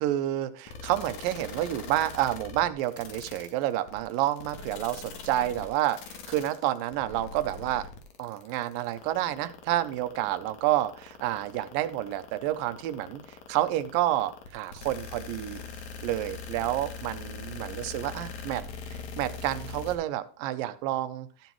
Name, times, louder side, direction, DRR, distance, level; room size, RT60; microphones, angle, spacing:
voice 1, 0.0-7.8 8.2-15.6 16.0-18.6 18.9-21.3, right 13 dB, 90° right, 13 dB, 2.4 m, -29 dB
sound 1, 0.7-20.0, left 5 dB, 70° left, 2.7 m, -41 dB
13.0 x 9.3 x 3.1 m, 0.39 s
omnidirectional pair, 3.9 m